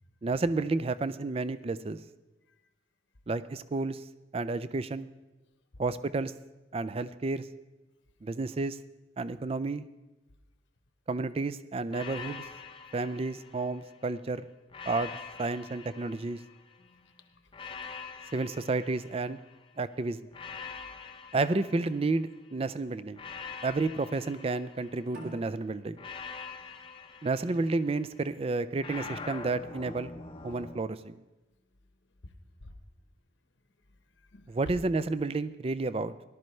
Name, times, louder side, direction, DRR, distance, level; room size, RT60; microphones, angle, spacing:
voice 1, 0.2-2.0 3.3-4.1 4.3-5.1 5.8-6.3 6.7-7.5 8.2-8.8 9.2-9.9 11.1-12.4 12.9-14.5 14.9-15.1 15.4-16.4 18.3-19.4 19.8-20.2 21.3-23.2 23.6-26.0 27.2-30.1 30.4-31.2 34.5-36.1, right 3 dB, 30° right, 14 dB, 0.3 m, -31 dB
sound 1, 11.9-14.1 14.7-16.9 17.5-19.7 20.3-22.5 23.1-25.3 26.0-28.1 28.8-30.8, left 5 dB, 25° left, 0.6 m, -45 dB
voice 2, 16.8-17.9 32.2-32.3 32.6-32.8 34.2-34.8, left 1 dB, 70° left, 7 dB, 1.0 m, -50 dB
sound 2, 25.1-28.3, right 1 dB, 55° right, 2.6 m, -48 dB
18.0 x 12.0 x 3.2 m, 1.1 s
head